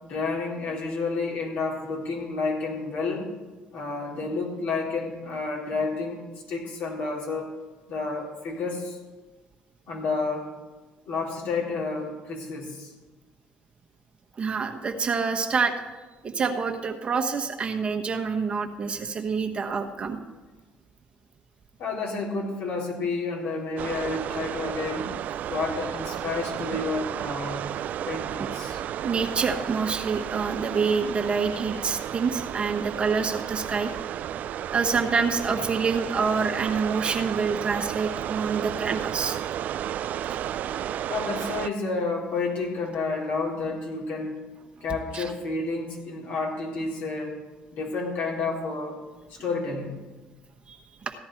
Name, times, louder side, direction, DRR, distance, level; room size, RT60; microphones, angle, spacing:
voice 1, 0.0-3.3 3.7-6.2 6.5-7.5 7.9-9.0 9.9-10.5 11.1-12.9 21.8-25.1 25.5-27.6 28.1-28.8 41.1-44.4 44.8-47.4 47.7-49.0 49.3-50.0, left 3 dB, 65° left, -2 dB, 3.8 m, -30 dB
voice 2, 14.4-15.7 16.2-20.2 28.4-28.5 29.0-33.9 34.7-39.4 40.3-40.4 45.1-45.3 50.7-51.1, right 5 dB, 35° right, 4 dB, 1.2 m, -27 dB
sound 1, 23.8-41.7, right 10 dB, 55° right, 0.4 m, -33 dB
15.0 x 10.5 x 4.6 m, 1.2 s
supercardioid pair, 80°, 3 cm